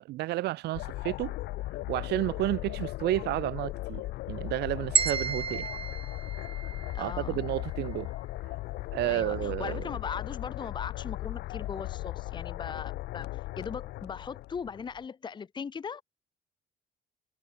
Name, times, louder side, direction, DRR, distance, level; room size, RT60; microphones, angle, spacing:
voice 1, 0.1-1.3 1.9-4.0 4.3-5.7 7.0-8.1 8.9-9.8, right 17 dB, 80° right, 1.6 m, -31 dB
sound 1, 0.7-15.0, left 17 dB, 80° left, 1.8 m, -37 dB
sound 2, 5.0-7.1, right 6 dB, 35° right, 1.2 m, -31 dB
voice 2, 6.9-7.4 9.1-16.0, left 6 dB, 25° left, 0.9 m, -39 dB
cardioid pair, 110°, 17 cm